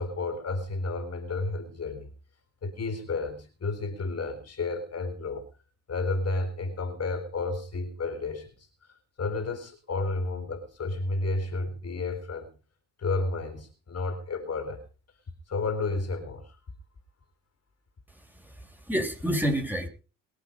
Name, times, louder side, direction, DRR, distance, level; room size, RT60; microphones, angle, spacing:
voice 1, 0.0-2.1 2.6-5.4 5.9-12.5 13.0-14.8 15.5-16.6, left 3 dB, 50° left, 7 dB, 4.1 m, -32 dB
voice 2, 18.1-19.9, equal, 5° right, 3 dB, 6.8 m, -30 dB
22.0 x 8.1 x 5.4 m, 0.36 s
cardioid pair, 75°, 32 cm